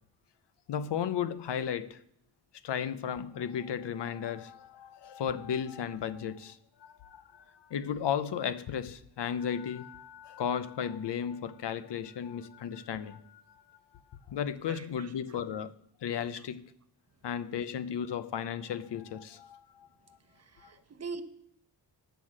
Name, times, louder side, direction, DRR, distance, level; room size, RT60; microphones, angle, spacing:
voice 1, 0.7-2.0 2.6-13.4 13.7-13.8 14.3-15.7 16.0-16.7 17.2-20.2 20.6-20.7, left 8 dB, 80° left, 0.7 m, -35 dB
voice 2, 14.7-15.4 16.3-16.4 20.3-21.2, right 4 dB, 40° right, 0.9 m, -44 dB
9.2 x 8.1 x 7.4 m
wide cardioid pair, 130°, 41 cm